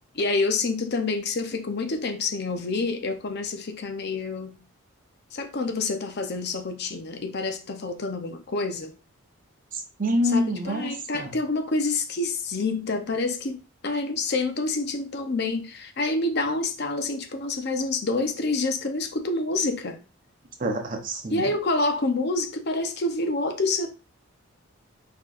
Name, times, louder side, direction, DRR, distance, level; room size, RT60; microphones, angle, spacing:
voice 1, 0.1-4.6 5.3-8.9 10.2-13.6 13.8-20.0 21.3-23.9, left 3 dB, 50° left, 0.6 m, -27 dB
voice 2, 9.7-11.4 20.6-21.4, equal, 40° right, 0.7 m, -27 dB
4.4 x 4.4 x 2.4 m
head